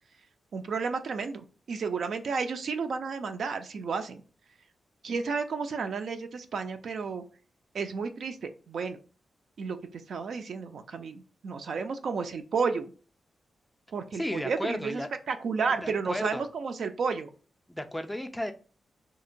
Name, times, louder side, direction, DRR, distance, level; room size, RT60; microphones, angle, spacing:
voice 1, 0.5-4.2 5.0-7.2 7.7-9.0 9.6-12.9 13.9-15.0 15.3-17.3, right 5 dB, 75° right, 8 dB, 0.4 m, -32 dB
voice 2, 14.2-15.1 15.8-16.5 17.7-18.5, left 1 dB, 5° left, 7 dB, 0.3 m, -33 dB
2.8 x 2.1 x 2.5 m, 0.37 s
wide cardioid pair, 110°, 0 cm